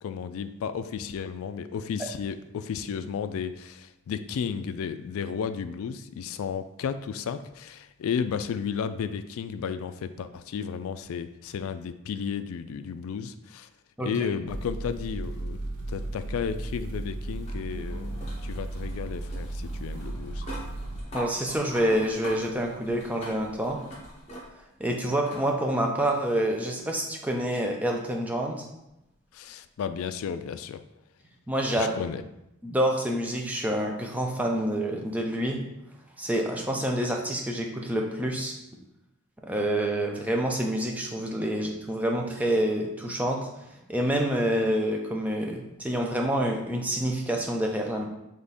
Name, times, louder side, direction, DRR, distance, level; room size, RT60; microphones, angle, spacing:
voice 1, 0.0-13.7 14.0-15.6 15.9-20.4 29.3-30.8 31.8-32.2, left 7 dB, 70° left, 12 dB, 0.3 m, -33 dB
sound 1, 14.5-21.0, right 2 dB, 90° right, 0.7 m, -35 dB
sound 2, 15.9-24.8 25.3-25.5 26.8-26.9 29.8-29.9, equal, 30° left, 1.0 m, -44 dB
voice 2, 21.1-23.8 24.8-28.6 31.5-31.9 32.6-35.6 36.2-38.5 39.4-43.5 43.9-48.1, right 1 dB, 5° right, 1 dB, 0.4 m, -27 dB
3.5 x 3.4 x 4.1 m, 0.87 s
head